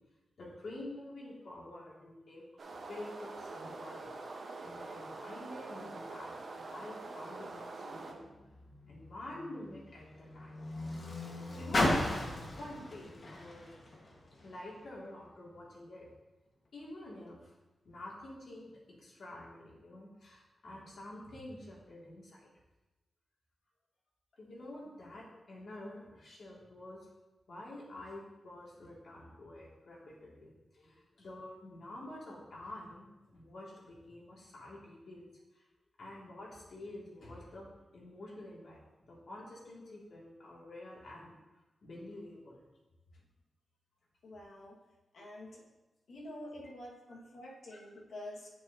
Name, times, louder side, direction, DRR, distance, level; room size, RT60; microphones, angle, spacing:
voice 1, 0.4-2.4 2.9-4.1 4.6-8.3 8.9-10.5 11.2-13.7 14.4-16.1 16.7-17.5 17.8-18.7 19.0-22.5 24.4-27.1 27.5-35.6 36.0-41.3 41.8-42.6 47.7-47.8, left 1 dB, 70° left, -5 dB, 2.3 m, -48 dB
sound 1, 2.6-8.1, right 3 dB, 60° right, 1.1 m, -45 dB
Car, 8.1-14.7 15.5-15.6, left 1 dB, 50° left, 1.5 m, -37 dB
voice 2, 44.2-44.8 45.1-45.6 46.1-48.5, left 1 dB, 90° left, -3 dB, 1.7 m, -47 dB
8.3 x 7.4 x 2.8 m, 1.1 s
wide cardioid pair, 100°, 0 cm